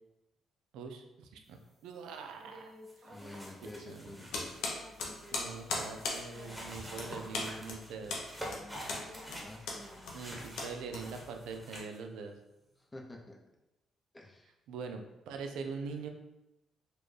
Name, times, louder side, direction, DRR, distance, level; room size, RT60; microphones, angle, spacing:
voice 1, 0.7-2.7 3.6-4.0 5.3-8.2 10.1-12.4 14.7-16.1, right 5 dB, 90° right, 5 dB, 0.4 m, -43 dB
sound 1, 1.4-8.1 8.4-11.1 11.5-12.8, equal, 25° right, 1.3 m, -57 dB
sound 2, 2.9-12.0, equal, 5° right, 1.1 m, -47 dB
voice 2, 3.1-4.5 9.4-9.6 12.8-13.4 14.1-14.5, left 1 dB, 20° left, 0 dB, 0.6 m, -49 dB
sound 3, 4.3-11.5, left 3 dB, 85° left, 0.8 m, -39 dB
4.2 x 2.2 x 3.2 m, 0.95 s
cardioid pair, 90°, 0 cm